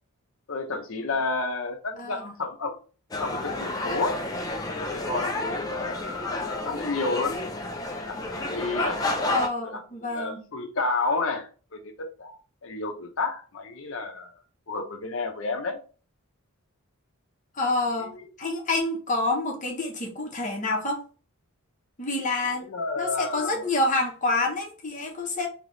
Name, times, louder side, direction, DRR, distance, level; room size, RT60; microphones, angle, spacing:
voice 1, 0.5-2.8 3.2-4.3 4.7-7.4 7.9-9.0 9.6-14.3 14.7-15.8 18.0-18.2 22.6-23.6, left 3 dB, 65° left, 0.7 m, -31 dB
voice 2, 2.0-2.3 9.3-10.4 17.6-21.0 22.0-22.7 23.0-25.5, left 2 dB, 35° left, 1.0 m, -28 dB
sound 1, 3.1-9.5, left 2 dB, 15° left, 0.5 m, -30 dB
3.3 x 2.9 x 3.9 m
head